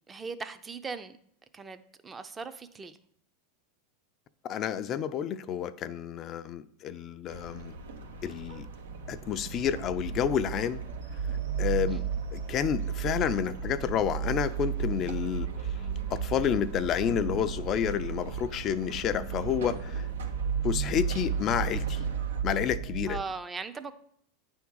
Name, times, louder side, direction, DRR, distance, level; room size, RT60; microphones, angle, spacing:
voice 1, 0.1-1.2 1.5-3.0 11.9-12.0 23.1-23.9, right 4 dB, 20° right, 10 dB, 0.6 m, -39 dB
voice 2, 4.4-7.7 8.2-8.7 9.1-10.8 11.6-12.0 12.3-15.7 16.1-20.1 20.6-22.0 22.4-23.2, left 9 dB, 40° left, 12 dB, 0.4 m, -30 dB
sound 1, 7.3-22.4, right 3 dB, 90° right, 0.9 m, -44 dB
sound 2, 8.4-23.2, right 7 dB, 60° right, 1.6 m, -34 dB
9.2 x 3.5 x 6.2 m, 0.68 s
hypercardioid pair, 115°, 0 cm